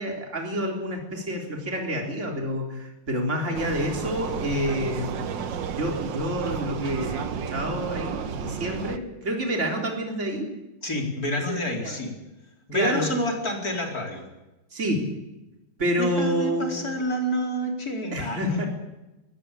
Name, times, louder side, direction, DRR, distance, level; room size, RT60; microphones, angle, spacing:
voice 1, 0.0-10.5 11.5-12.0 12.7-13.1 14.7-15.1 15.8-16.8 18.1-18.6, equal, 35° right, 1 dB, 4.0 m, -28 dB
Vehicle, 3.5-9.0, right 7 dB, 65° right, 1.8 m, -32 dB
voice 2, 10.8-12.1 12.7-14.3 16.0-18.7, equal, 45° left, 1 dB, 4.9 m, -28 dB
21.0 x 17.5 x 8.5 m, 1.0 s
omnidirectional pair, 2.2 m